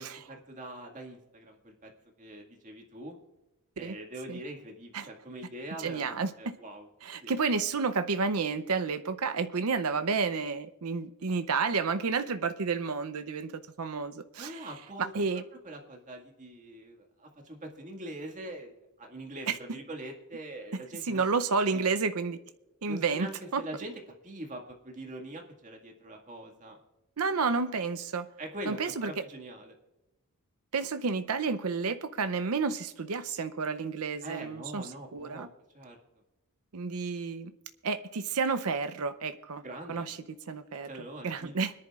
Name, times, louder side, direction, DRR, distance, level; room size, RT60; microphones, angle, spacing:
voice 1, 0.0-1.9 2.2-3.2 3.8-6.9 7.2-7.3 14.4-21.2 21.7-21.8 22.9-23.9 24.2-26.8 28.4-29.7 34.2-35.5 35.7-36.0 39.6-40.1 40.9-41.5, right 1 dB, 35° right, 2 dB, 2.0 m, -43 dB
voice 2, 5.8-6.5 7.0-14.7 15.0-15.4 19.5-19.6 21.0-22.4 22.8-23.6 27.2-28.3 28.7-29.2 30.7-35.5 36.7-37.5 37.8-39.6 39.9-40.9 41.2-41.7, right 4 dB, 80° right, 10 dB, 0.7 m, -31 dB
25.5 x 10.5 x 2.4 m, 1.0 s
head